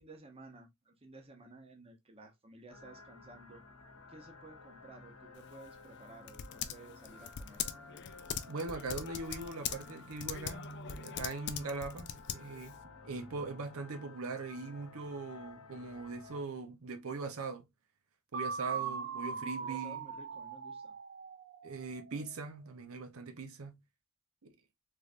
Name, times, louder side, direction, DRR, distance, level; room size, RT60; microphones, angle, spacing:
voice 1, 0.0-3.7 4.1-7.6 18.7-20.9, right 2 dB, 25° right, 0.8 m, -55 dB
sound 1, 2.7-16.4, left 3 dB, 90° left, 0.9 m, -53 dB
Typing, 5.4-12.8, left 9 dB, 55° left, 0.4 m, -42 dB
voice 2, 8.5-12.7 13.0-17.7 18.3-20.0 21.6-23.7 24.4-24.5, right 3 dB, 85° right, 0.7 m, -41 dB
sound 2, 18.3-22.2, right 6 dB, 50° right, 0.4 m, -40 dB
3.5 x 3.2 x 2.5 m
head